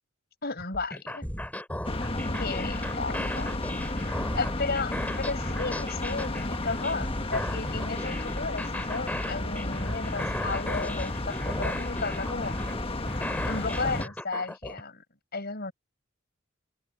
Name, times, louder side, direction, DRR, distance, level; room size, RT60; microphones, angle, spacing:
voice 1, 0.4-1.3 2.4-3.6 4.3-12.6 13.5-15.0 15.3-15.7, left 3 dB, 50° left, 6.0 m, -34 dB
sound 1, 0.6-14.8, left 1 dB, 10° left, 7.2 m, -36 dB
sound 2, 1.8-14.0, left 2 dB, 30° left, 1.4 m, -33 dB
open air
head